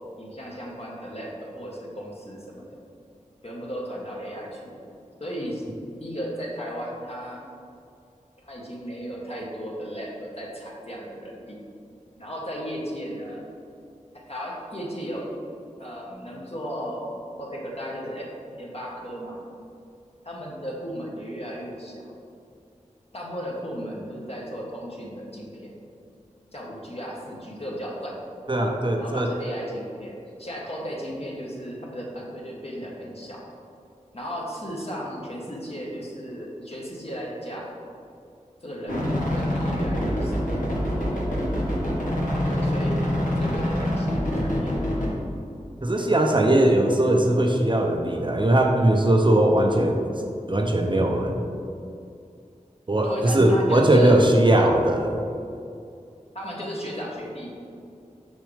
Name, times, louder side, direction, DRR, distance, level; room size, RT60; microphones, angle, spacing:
voice 1, 0.2-2.6 3.4-4.9 5.2-5.6 6.0-7.4 8.4-11.6 12.2-13.5 14.3-15.3 15.8-18.3 18.6-19.4 20.2-22.1 23.1-25.8 26.5-28.2 29.0-33.4 34.1-37.7 38.6-40.8 42.4-44.8 46.0-46.1 53.0-54.2 56.3-57.5, equal, 50° left, -4 dB, 1.4 m, -35 dB
voice 2, 28.5-29.3 45.8-50.0 50.5-51.4 52.9-55.2, right 1 dB, 35° right, 2 dB, 0.7 m, -20 dB
sound 1, 38.9-45.1, left 1 dB, 85° left, 1.5 m, -25 dB
6.2 x 6.0 x 3.4 m, 2.5 s
wide cardioid pair, 60°, 13 cm